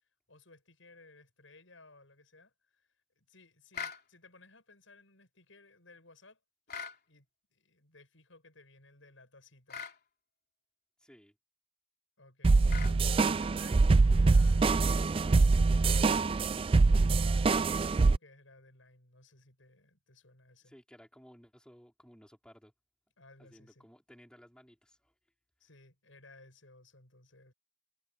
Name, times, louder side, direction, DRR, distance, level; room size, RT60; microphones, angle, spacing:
voice 1, 0.3-2.9 3.2-6.4 7.1-9.9 12.2-16.6 16.9-20.8 23.2-23.9 25.6-27.5, left 2 dB, 80° left, 7.5 m, -59 dB
sound 1, 3.7-4.0 6.7-7.0 9.7-10.0 12.7-13.0, left 6 dB, 50° left, 3.4 m, -40 dB
voice 2, 11.0-11.3 20.6-22.7 23.4-25.1, equal, 5° left, 4.7 m, -58 dB
sound 2, 12.4-18.2, right 3 dB, 30° right, 0.3 m, -24 dB
head